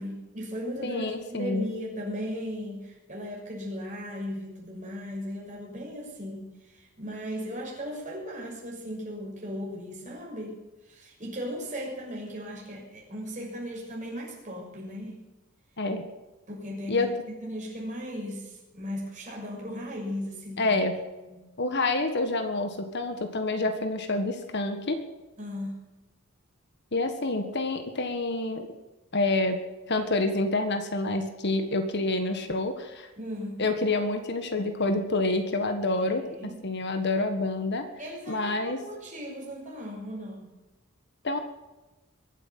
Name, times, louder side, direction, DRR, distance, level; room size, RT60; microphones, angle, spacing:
voice 1, 0.0-1.0 1.3-10.6 10.9-15.2 16.5-20.7 21.3-21.5 25.4-25.8 33.2-33.6 36.0-36.6 38.0-40.5, equal, 35° right, -2 dB, 6.4 m, -37 dB
voice 2, 0.8-1.7 15.8-16.1 16.9-17.1 20.6-20.9 21.6-25.0 26.9-28.7 29.1-29.6 29.9-33.1 33.6-37.9 38.3-38.8 41.2-41.4, left 2 dB, 50° left, 7 dB, 1.6 m, -28 dB
23.0 x 8.4 x 7.5 m, 1.1 s
head